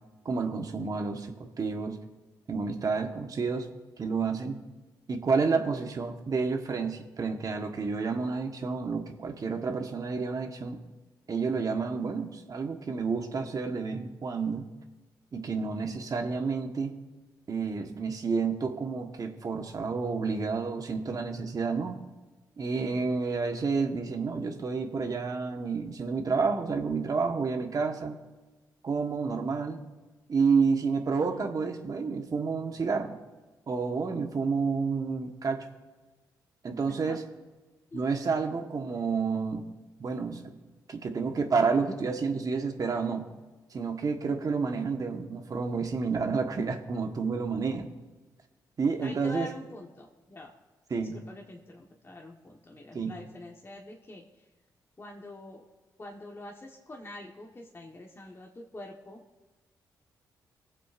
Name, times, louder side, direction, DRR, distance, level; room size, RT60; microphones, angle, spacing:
voice 1, 0.2-2.0 2.5-3.7 4.0-4.6 5.1-10.8 11.3-14.6 15.3-16.9 17.5-22.0 22.6-28.2 28.8-29.8 30.3-33.2 33.7-35.6 36.6-37.2 37.9-39.6 40.0-40.5 40.9-43.3 43.7-47.9 48.8-49.5 50.9-51.2 52.9-53.1, right 4 dB, 50° right, 5 dB, 1.3 m, -30 dB
voice 2, 36.9-37.2 37.9-38.1 49.0-50.5 51.3-54.4 55.0-55.6 56.0-59.2, left 2 dB, 30° left, 0 dB, 1.3 m, -45 dB
20.5 x 7.5 x 2.5 m, 1.2 s
supercardioid pair, 55°, 8 cm